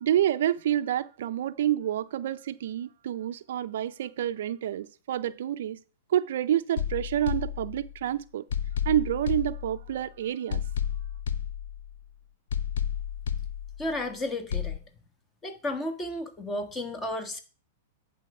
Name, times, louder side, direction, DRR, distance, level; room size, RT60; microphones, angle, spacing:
voice 1, 0.0-5.8 6.1-8.5 8.9-10.6, right 11 dB, 70° right, 0.4 m, -28 dB
sound 1, 6.8-8.1 8.5-10.1 10.5-12.1 12.5-14.1 14.5-14.8, left 8 dB, 75° left, 0.6 m, -32 dB
voice 2, 13.8-14.8 15.4-17.4, left 1 dB, 20° left, 1.5 m, -33 dB
9.7 x 3.9 x 5.4 m
hypercardioid pair, 115°, 0 cm